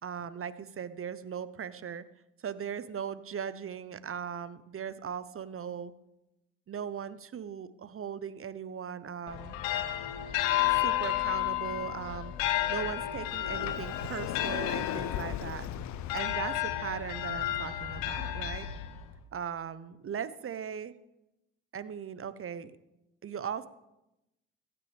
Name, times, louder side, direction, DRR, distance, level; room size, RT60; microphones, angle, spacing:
voice 1, 0.0-2.1 2.4-5.9 6.7-9.6 10.7-12.3 12.7-15.7 16.1-18.7 19.3-20.9 21.7-22.7 23.2-23.7, right 8 dB, 40° right, 14 dB, 1.1 m, -38 dB
sound 1, 9.3-19.2, left 13 dB, 75° left, 1.1 m, -32 dB
Sliding door, 13.5-16.5, left 13 dB, 60° left, 0.6 m, -37 dB
24.5 x 9.5 x 3.6 m, 0.93 s
hypercardioid pair, 45°, 33 cm